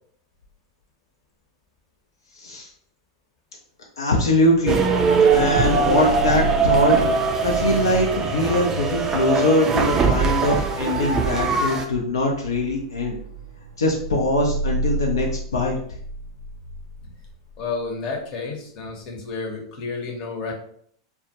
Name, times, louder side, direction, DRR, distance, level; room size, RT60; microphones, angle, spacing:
voice 1, 4.0-4.8 5.3-7.0 7.4-13.1 13.8-15.8, left 1 dB, 80° left, -1 dB, 0.4 m, -22 dB
sound 1, 4.7-11.8, right 5 dB, 20° right, 0.3 m, -21 dB
sound 2, 5.3-17.9, right 2 dB, 90° right, 0.4 m, -33 dB
voice 2, 17.6-20.5, left 4 dB, 40° left, 0 dB, 0.7 m, -31 dB
2.1 x 2.1 x 2.8 m, 0.62 s
hypercardioid pair, 100°, 2 cm